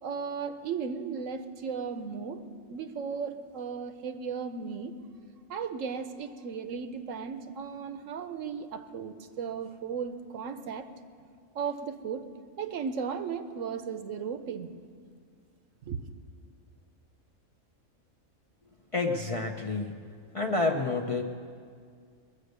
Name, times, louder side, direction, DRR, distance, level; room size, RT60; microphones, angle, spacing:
voice 1, 0.0-4.9 5.5-10.9 11.5-12.3 12.6-14.7 15.8-16.0, right 6 dB, 70° right, 9 dB, 1.1 m, -36 dB
voice 2, 18.9-20.0 20.3-21.2, left 3 dB, 35° left, 2 dB, 0.6 m, -29 dB
21.0 x 8.0 x 6.6 m, 2.1 s
omnidirectional pair, 1.4 m